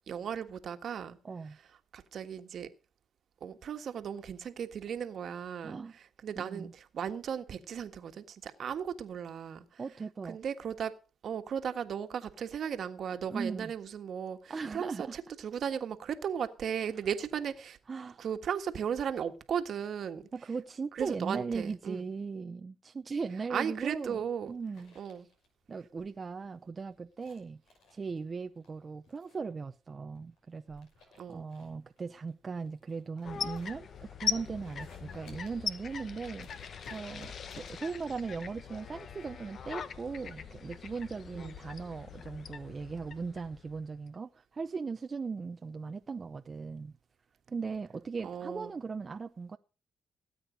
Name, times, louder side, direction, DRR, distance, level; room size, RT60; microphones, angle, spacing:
voice 1, 0.1-1.2 1.9-2.7 3.4-5.8 6.2-9.6 10.3-10.9 11.2-17.8 18.2-20.2 20.9-22.0 23.5-24.5 24.9-25.3 31.2-31.4 41.3-41.6 48.2-48.7, right 8 dB, 60° right, 1.5 m, -36 dB
voice 2, 1.2-1.6 5.6-5.9 6.4-6.7 9.8-10.4 13.3-13.7 14.5-15.2 17.9-18.2 20.3-24.2 24.5-25.0 25.7-27.6 27.9-46.9 47.5-49.6, right 4 dB, 35° right, 0.6 m, -38 dB
sound 1, 23.0-41.7, left 4 dB, 85° left, 5.8 m, -61 dB
sound 2, 33.2-44.1, left 7 dB, 55° left, 1.0 m, -41 dB
17.5 x 8.5 x 5.1 m
cardioid pair, 90°, 0 cm